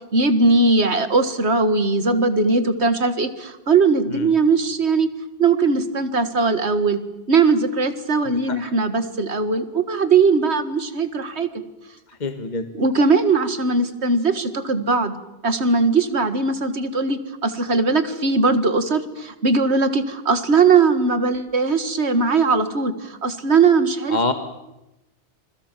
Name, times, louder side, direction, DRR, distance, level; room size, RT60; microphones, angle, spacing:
voice 1, 0.1-5.1 5.4-7.0 7.3-11.5 12.7-15.1 15.4-24.2, right 4 dB, 70° right, 10 dB, 2.1 m, -19 dB
voice 2, 8.2-8.6 12.1-12.7 24.1-24.3, left 3 dB, 40° left, 8 dB, 1.5 m, -26 dB
27.5 x 22.0 x 7.5 m, 0.95 s
omnidirectional pair, 1.2 m